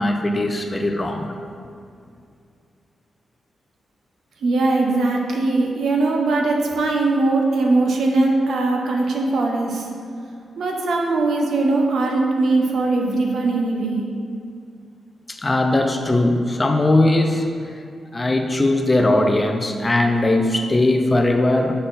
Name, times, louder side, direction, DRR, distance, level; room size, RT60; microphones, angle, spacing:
voice 1, 0.0-1.3 15.3-17.8 18.1-21.7, left 2 dB, 20° left, 4 dB, 0.4 m, -19 dB
voice 2, 4.4-9.9 10.6-14.1, right 2 dB, 65° right, 1 dB, 0.7 m, -20 dB
6.5 x 3.9 x 4.0 m, 2.3 s
wide cardioid pair, 145°, 0 cm